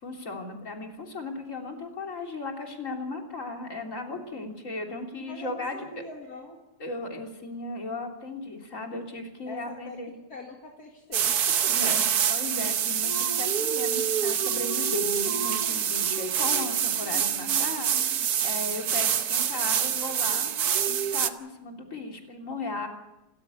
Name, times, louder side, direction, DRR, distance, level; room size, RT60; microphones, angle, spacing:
voice 1, 0.0-5.9 6.8-10.1 11.7-20.5 20.9-22.9, left 2 dB, 50° left, 2 dB, 3.7 m, -36 dB
voice 2, 5.2-6.6 9.5-11.9, left 2 dB, 65° left, 1 dB, 2.6 m, -44 dB
sound 1, 11.1-21.3, right 8 dB, 70° right, 1.5 m, -26 dB
28.5 x 14.0 x 8.4 m, 0.95 s
omnidirectional pair, 1.7 m